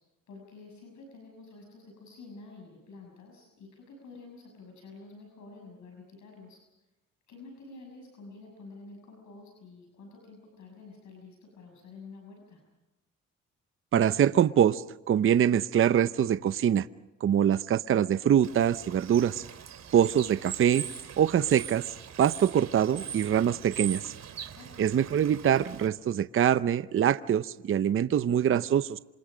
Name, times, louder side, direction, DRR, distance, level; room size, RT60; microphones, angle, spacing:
voice 1, 0.3-6.6 7.3-12.6 24.5-25.1, left 3 dB, 70° left, 1 dB, 6.6 m, -49 dB
voice 2, 13.9-16.9 17.2-19.4 19.9-20.9 21.2-21.8 22.2-24.0 24.8-29.0, right 9 dB, 45° right, 14 dB, 0.7 m, -24 dB
Bird / Water, 18.4-25.9, right 8 dB, 60° right, 3.0 m, -41 dB
27.0 x 27.0 x 5.1 m, 1.0 s
cardioid pair, 90°, 30 cm